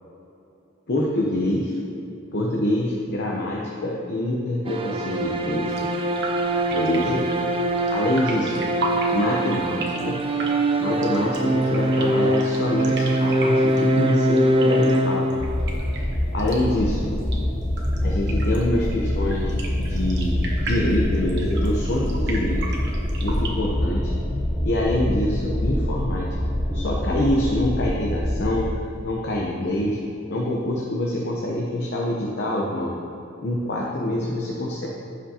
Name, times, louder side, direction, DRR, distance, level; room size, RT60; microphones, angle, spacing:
voice 1, 0.9-1.8 2.3-5.9 6.7-7.2 7.9-8.5 9.1-10.2 10.8-15.3 16.3-17.1 18.0-22.6 23.2-24.1 24.6-26.3 26.7-28.7 29.0-30.0 30.3-32.9 33.4-34.9, left 1 dB, 55° left, -2 dB, 0.8 m, -25 dB
sound 1, 4.7-15.8, right 1 dB, 25° right, 0.4 m, -23 dB
sound 2, 5.7-23.5, right 2 dB, 55° right, 1.2 m, -36 dB
sound 3, 15.4-28.6, left 1 dB, 5° left, 0.8 m, -25 dB
15.5 x 5.2 x 2.8 m, 2.9 s
head